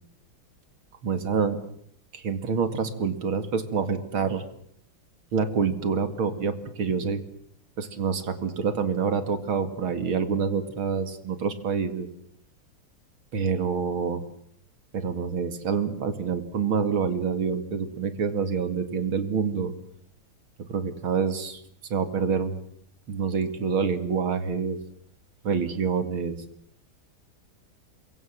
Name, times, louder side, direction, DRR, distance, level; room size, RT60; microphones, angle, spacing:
voice 1, 1.0-1.6 2.1-4.4 5.3-7.2 7.8-12.1 13.3-14.2 14.9-19.7 20.7-21.6 21.9-22.6 23.1-24.8 25.4-26.4, right 6 dB, 80° right, 10 dB, 3.0 m, -27 dB
27.0 x 23.0 x 7.4 m, 0.66 s
omnidirectional pair, 2.3 m